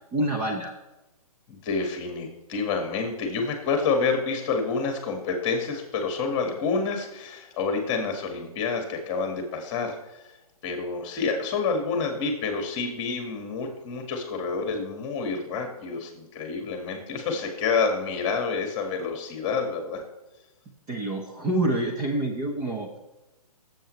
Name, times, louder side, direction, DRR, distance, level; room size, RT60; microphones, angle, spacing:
voice 1, 0.1-0.7 20.9-23.0, right 1 dB, 20° right, 1 dB, 1.1 m, -27 dB
voice 2, 1.5-10.3 10.6-20.0, left 4 dB, 25° left, 4 dB, 1.9 m, -28 dB
17.5 x 8.0 x 3.3 m, 1.0 s
hypercardioid pair, 150°, 19 cm